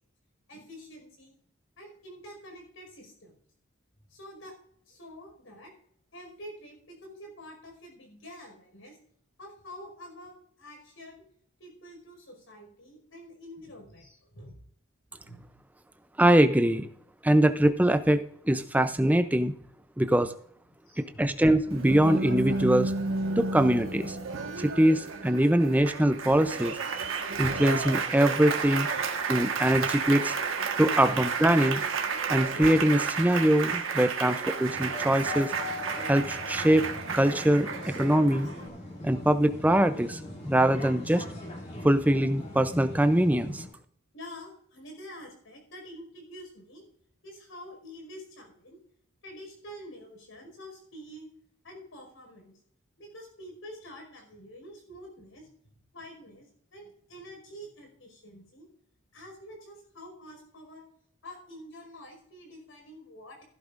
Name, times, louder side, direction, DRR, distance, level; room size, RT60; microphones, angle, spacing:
voice 1, 0.5-1.3 1.8-3.4 4.1-4.5 4.9-5.7 6.1-9.0 9.4-11.2 11.6-14.6 15.2-15.5 19.6-19.7 20.9-21.3 24.4-24.9 28.9-29.1 31.1-31.2 34.2-34.4 44.1-46.8 47.2-48.8 49.2-51.3 51.6-52.5 53.0-55.5 55.9-58.7 59.1-60.8 61.2-63.4, equal, 85° left, 2 dB, 5.2 m, -47 dB
voice 2, 16.2-16.9 17.2-19.5 20.0-20.3 21.0-22.9 23.4-24.2 24.6-26.7 27.4-28.9 29.3-30.3 30.8-31.8 32.3-34.3 34.6-35.5 36.1-38.5 39.0-40.2 40.4-41.2 41.8-43.6, right 1 dB, 10° right, 10 dB, 0.5 m, -23 dB
Applause, 21.7-38.7, right 5 dB, 85° right, 1.4 m, -32 dB
sound 1, 34.7-43.6, left 2 dB, 35° left, 2.7 m, -40 dB
15.5 x 11.0 x 2.5 m, 0.63 s
head